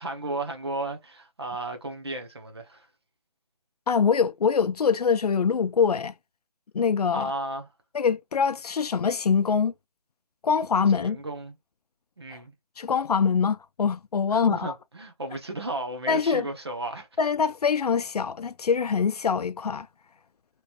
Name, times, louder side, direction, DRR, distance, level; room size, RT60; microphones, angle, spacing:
voice 1, 0.0-2.9 7.1-7.7 10.9-11.5 12.2-12.5 14.3-17.1, right 2 dB, 40° right, 0.7 m, -34 dB
voice 2, 3.9-6.1 6.7-7.3 7.9-9.7 10.4-11.2 12.3-12.4 12.8-14.7 16.1-16.5 17.2-19.9, left 6 dB, 65° left, 0.4 m, -24 dB
3.0 x 2.5 x 2.8 m
figure-of-eight pair, 175°, 21 cm